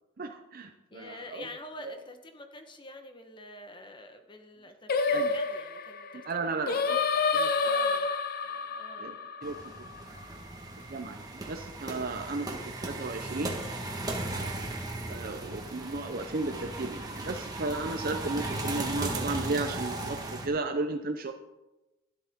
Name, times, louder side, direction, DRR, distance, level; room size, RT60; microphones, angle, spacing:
voice 1, 0.2-1.4 1.8-2.0 5.1-5.3 6.2-6.8 7.3-7.5 9.0-9.2 9.4-9.6 10.9-13.6 14.2-14.6 15.1-21.3, right 3 dB, 45° right, 6 dB, 0.6 m, -34 dB
voice 2, 0.9-6.9 7.6-8.1 8.8-9.1 12.6-12.8 14.3-14.7, left 1 dB, 25° left, 6 dB, 1.1 m, -47 dB
Singing, 4.9-10.2, left 4 dB, 45° left, 0.6 m, -29 dB
sound 1, 9.4-20.5, right 2 dB, 20° right, 1.5 m, -37 dB
sound 2, 10.1-15.2, right 5 dB, 60° right, 1.4 m, -49 dB
12.0 x 12.0 x 3.6 m, 1.0 s
head